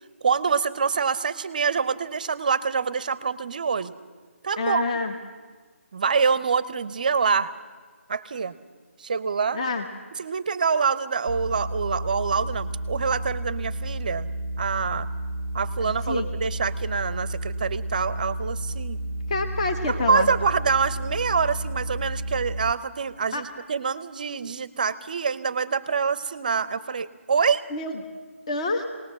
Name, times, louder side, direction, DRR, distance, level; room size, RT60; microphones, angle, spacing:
voice 1, 0.2-3.9 4.4-4.8 5.9-7.5 8.1-8.5 9.0-9.6 10.1-14.3 14.6-15.1 15.5-19.0 19.9-27.6, right 5 dB, 35° right, 17 dB, 0.7 m, -25 dB
voice 2, 4.6-5.1 9.5-9.8 15.8-16.3 19.3-20.3 23.3-23.4 27.7-27.9 28.5-28.9, left 3 dB, 30° left, 5 dB, 1.2 m, -27 dB
sound 1, 11.3-22.7, right 1 dB, 60° left, 2.1 m, -31 dB
20.5 x 19.0 x 7.5 m, 1.5 s
figure-of-eight pair, 170°, 8 cm